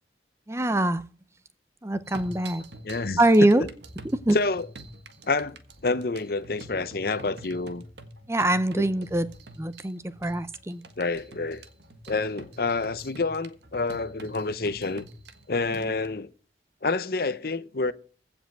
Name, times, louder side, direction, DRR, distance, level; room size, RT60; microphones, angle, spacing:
voice 1, 0.5-1.0 1.8-2.6 3.2-3.6 4.1-4.4 8.3-9.3 9.6-10.8, right 1 dB, 15° right, 0.6 m, -23 dB
sound 1, 2.1-16.1, right 1 dB, 70° right, 1.5 m, -46 dB
voice 2, 2.8-3.7 4.3-4.7 5.3-5.6 5.8-7.8 8.8-8.9 11.0-11.6 12.1-15.0 15.5-16.3 16.8-17.9, left 3 dB, 55° left, 0.8 m, -28 dB
15.5 x 5.3 x 7.8 m
head